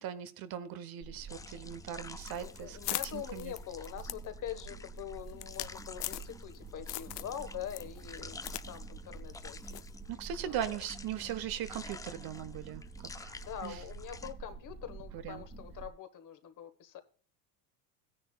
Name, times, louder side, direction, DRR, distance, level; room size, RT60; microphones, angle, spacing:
voice 1, 0.0-3.5 10.1-12.8 13.2-13.3 13.6-13.8 15.1-15.4, right 10 dB, 50° right, 1.1 m, -39 dB
sound 1, 1.0-15.9, right 3 dB, 15° right, 1.7 m, -48 dB
sound 2, 1.3-14.3, left 3 dB, 10° left, 0.4 m, -51 dB
sound 3, 2.2-6.6 6.9-7.4 7.7-8.7 8.9-9.0 9.7-9.9, left 20 dB, 80° left, 0.7 m, -40 dB
voice 2, 2.4-9.8 10.5-10.8 13.4-17.0, left 10 dB, 40° left, 1.3 m, -44 dB
14.5 x 10.0 x 2.3 m
supercardioid pair, 100°, 46 cm